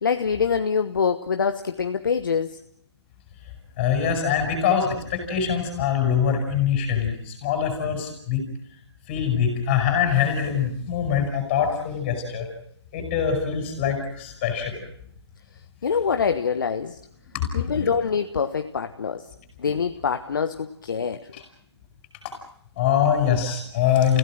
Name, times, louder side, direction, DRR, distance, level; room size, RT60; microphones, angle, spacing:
voice 1, 0.0-2.6 15.8-17.0 17.5-19.3 19.6-21.3, left 6 dB, 45° left, 8 dB, 1.2 m, -25 dB
voice 2, 3.8-8.4 9.1-12.5 12.9-14.8 17.3-17.9 21.3-21.4 22.7-24.2, left 8 dB, 20° left, 4 dB, 7.2 m, -23 dB
29.5 x 17.0 x 7.7 m, 0.70 s
figure-of-eight pair, 155°, 14 cm